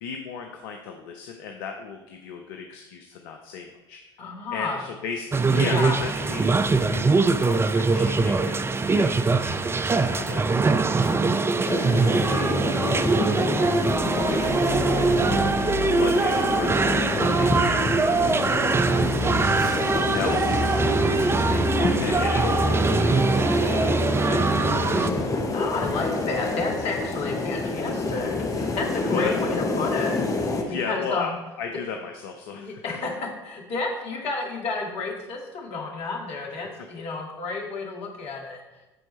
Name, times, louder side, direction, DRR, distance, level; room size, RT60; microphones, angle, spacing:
voice 1, 0.0-4.0 4.5-24.0 24.3-25.2 28.4-28.6 29.1-29.3 30.6-32.8, left 6 dB, 70° left, 4 dB, 0.7 m, -36 dB
voice 2, 4.2-4.8 5.5-6.0 25.5-30.6 30.8-31.4 32.5-38.6, left 3 dB, 50° left, 0 dB, 2.0 m, -31 dB
sound 1, 5.3-25.1, right 3 dB, 20° right, 0.5 m, -23 dB
sound 2, 11.6-30.6, left 3 dB, 25° left, 1.2 m, -28 dB
Truck, 13.8-30.0, right 1 dB, 35° right, 1.9 m, -33 dB
13.5 x 4.5 x 3.2 m, 1.1 s
hypercardioid pair, 65°, 13 cm